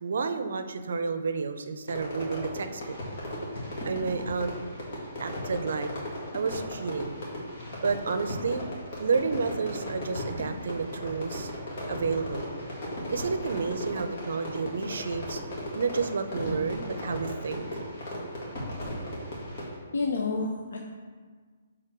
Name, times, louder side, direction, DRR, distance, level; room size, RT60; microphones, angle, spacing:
voice 1, 0.0-3.0 3.8-4.5 5.2-5.9 6.3-7.2 7.8-8.6 9.0-11.5 11.9-12.5 13.1-15.4 15.7-17.6, right 5 dB, 70° right, 9 dB, 0.5 m, -30 dB
Fireworks, 1.9-19.8, left 1 dB, 40° left, 1.9 m, -36 dB
voice 2, 19.9-20.8, left 3 dB, 80° left, 1 dB, 0.6 m, -29 dB
6.6 x 3.7 x 4.5 m, 1.5 s
hypercardioid pair, 165°, 0 cm